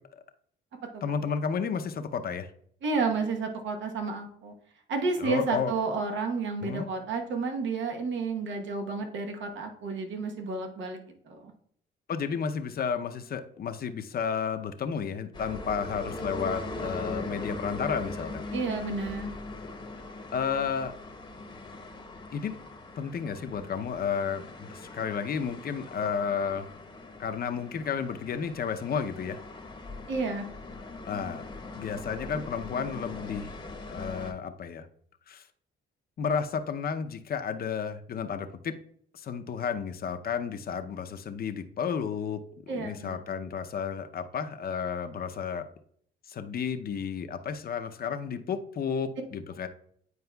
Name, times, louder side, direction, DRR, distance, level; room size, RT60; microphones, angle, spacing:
voice 1, 1.0-2.5 5.2-5.8 6.6-6.8 12.1-18.4 20.3-21.0 22.3-22.5 23.0-26.7 27.2-29.4 31.1-31.4 31.7-33.5 33.9-34.9 35.3-35.5 36.2-38.7 39.1-42.4 42.7-45.6 46.3-49.7, left 6 dB, 50° left, 8 dB, 0.7 m, -32 dB
voice 2, 2.8-4.5 4.9-11.5 18.5-19.3 30.1-30.5 42.7-43.2, right 4 dB, 70° right, 3 dB, 1.1 m, -31 dB
sound 1, 15.3-34.3, left 2 dB, 20° left, 0.9 m, -40 dB
9.5 x 4.7 x 2.3 m, 0.63 s
cardioid pair, 90°, 20 cm